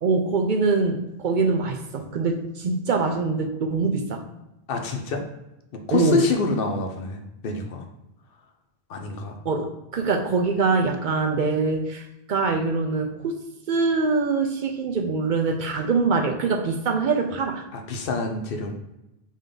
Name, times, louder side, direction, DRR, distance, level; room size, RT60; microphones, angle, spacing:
voice 1, 0.0-4.2 5.9-6.2 9.4-9.7 9.9-17.6, right 4 dB, 60° right, 3 dB, 0.6 m, -24 dB
voice 2, 4.7-5.2 5.7-7.8 8.9-9.3 17.7-18.7, left 3 dB, 65° left, 4 dB, 0.8 m, -27 dB
5.1 x 2.6 x 3.8 m, 0.90 s
omnidirectional pair, 1.0 m